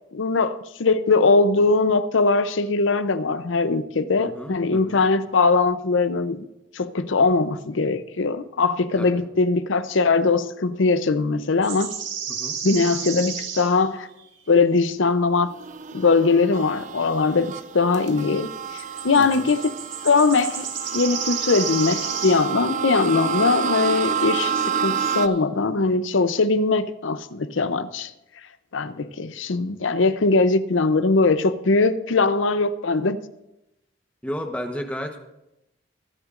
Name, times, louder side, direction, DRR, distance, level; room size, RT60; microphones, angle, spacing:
voice 1, 0.1-6.4 6.7-11.9 12.6-14.1 14.5-15.5 15.9-19.7 20.0-20.7 20.9-28.1 28.7-33.2, left 3 dB, 85° left, 12 dB, 0.7 m, -21 dB
voice 2, 4.2-5.0 9.0-9.1 12.3-12.5 19.2-19.5 34.2-35.2, equal, 5° left, 4 dB, 1.0 m, -33 dB
sound 1, 11.6-13.8 14.2-14.3 18.8-22.5 24.2-24.6 24.8-25.3, right 7 dB, 75° right, 1.8 m, -32 dB
sound 2, 15.5-25.3, right 7 dB, 40° right, 0.3 m, -29 dB
23.0 x 8.9 x 2.6 m, 0.89 s
head